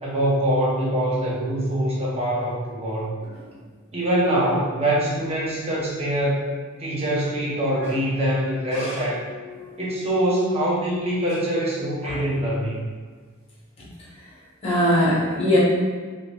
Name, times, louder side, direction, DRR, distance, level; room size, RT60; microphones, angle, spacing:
voice 1, 0.0-3.1 3.9-6.4 6.8-9.2 9.8-12.8, right 1 dB, 30° right, -6 dB, 0.8 m, -24 dB
voice 2, 14.6-15.6, equal, 25° left, -6 dB, 1.0 m, -22 dB
3.1 x 2.7 x 3.3 m, 1.5 s
head